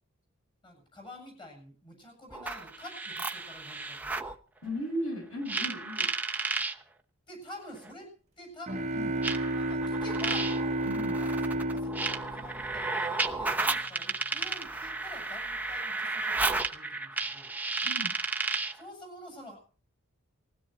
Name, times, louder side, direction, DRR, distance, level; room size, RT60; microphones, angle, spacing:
voice 1, 0.6-4.1 7.3-8.1 8.4-8.9 9.5-10.5 11.2-17.5 18.7-19.6, left 1 dB, 20° left, 3 dB, 7.6 m, -48 dB
sound 1, 2.3-4.3 5.5-6.7 7.8-7.9 9.2-18.8, right 3 dB, 10° right, 0.9 m, -33 dB
voice 2, 4.6-6.1 8.9-9.1 10.8-11.1 17.8-18.1, equal, 65° left, 2 dB, 8.0 m, -36 dB
sound 2, 8.7-13.3, right 1 dB, 30° right, 1.3 m, -32 dB
20.0 x 16.5 x 4.4 m, 0.40 s
head